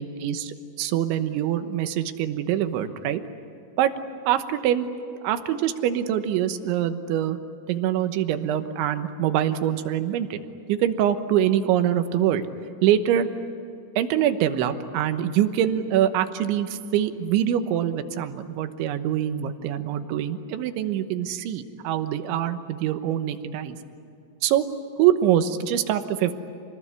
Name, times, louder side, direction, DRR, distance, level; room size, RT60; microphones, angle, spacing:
voice 1, 0.0-3.2 3.8-3.9 4.3-4.9 5.2-7.4 7.7-10.4 10.7-12.4 12.8-13.3 14.0-23.8 24.4-24.7 25.0-26.3, right 10 dB, 85° right, 9 dB, 3.5 m, -24 dB
28.5 x 20.0 x 9.8 m, 2.5 s
omnidirectional pair, 5.3 m